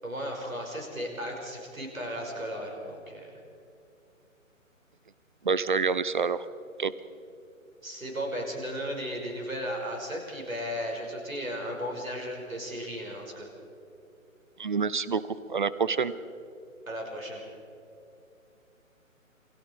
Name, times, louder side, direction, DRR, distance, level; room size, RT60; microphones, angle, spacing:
voice 1, 0.0-3.4 7.8-13.5 16.9-17.4, equal, 75° right, 1 dB, 5.9 m, -35 dB
voice 2, 5.4-6.4 6.8-6.9 14.6-15.2 15.5-16.1, right 5 dB, 35° right, 16 dB, 0.7 m, -27 dB
28.0 x 21.5 x 4.7 m, 2.6 s
figure-of-eight pair, 140°, 41 cm